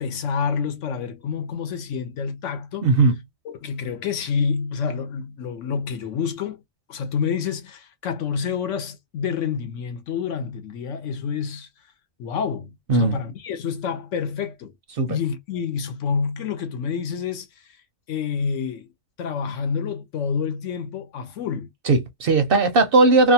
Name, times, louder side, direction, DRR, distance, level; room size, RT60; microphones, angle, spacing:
voice 1, 0.0-2.9 3.4-6.6 6.9-11.7 12.2-14.7 15.1-17.5 18.1-18.9 19.2-21.7, left 6 dB, 75° left, 1.0 m, -28 dB
voice 2, 2.8-3.2 12.9-13.2 14.9-15.2 21.9-23.3, right 3 dB, 60° right, 0.6 m, -17 dB
2.5 x 2.3 x 2.7 m
omnidirectional pair, 1.3 m